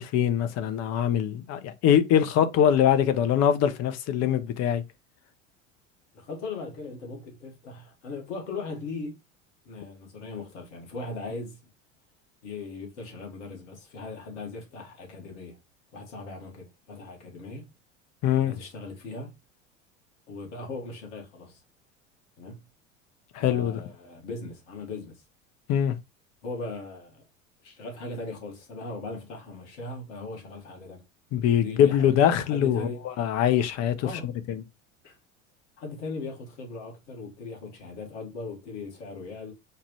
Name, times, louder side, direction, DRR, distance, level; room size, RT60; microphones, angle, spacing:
voice 1, 0.0-4.8 18.2-18.5 23.3-23.8 25.7-26.0 31.3-32.9 33.2-34.6, left 9 dB, 40° left, 0.7 m, -23 dB
voice 2, 6.1-9.2 9.6-11.6 12.4-15.6 15.9-17.7 18.4-19.3 20.3-21.6 22.4-22.6 23.4-25.2 26.4-27.2 27.6-31.0 31.6-32.1 32.5-33.0 34.0-34.3 35.0-35.2 35.8-39.5, left 3 dB, 65° left, 1.7 m, -39 dB
4.7 x 2.4 x 3.1 m
figure-of-eight pair, 75°, 39 cm